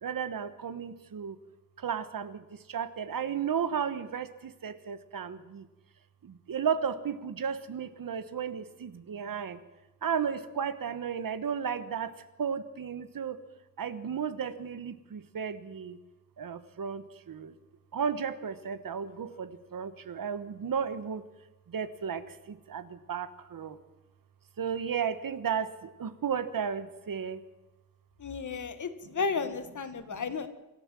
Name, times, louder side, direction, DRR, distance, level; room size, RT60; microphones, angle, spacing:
voice 1, 0.0-1.4 1.8-5.7 6.2-9.6 10.0-12.1 12.4-13.4 13.8-16.0 16.4-17.5 17.9-21.2 21.7-23.8 24.6-27.4, right 7 dB, 80° right, 13 dB, 1.3 m, -34 dB
voice 2, 28.2-30.5, left 5 dB, 60° left, 10 dB, 1.6 m, -33 dB
25.0 x 14.0 x 7.6 m, 1.0 s
wide cardioid pair, 165°, 33 cm